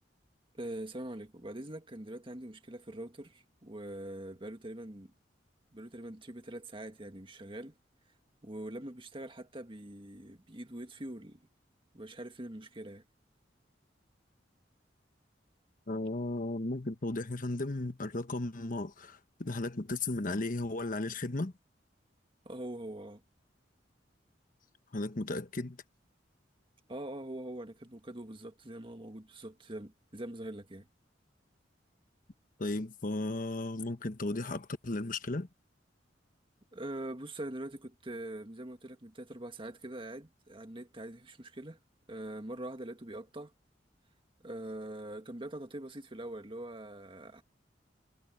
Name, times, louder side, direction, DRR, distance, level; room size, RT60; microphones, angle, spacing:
voice 1, 0.6-5.1 5.7-7.7 8.4-11.5 11.9-13.0 22.5-23.2 26.9-30.9 36.7-41.8 42.1-43.5 44.4-47.4, right 1 dB, 30° right, 1.8 m, -43 dB
voice 2, 15.9-21.5 24.9-25.8 32.6-35.5, left 2 dB, 50° left, 1.2 m, -35 dB
head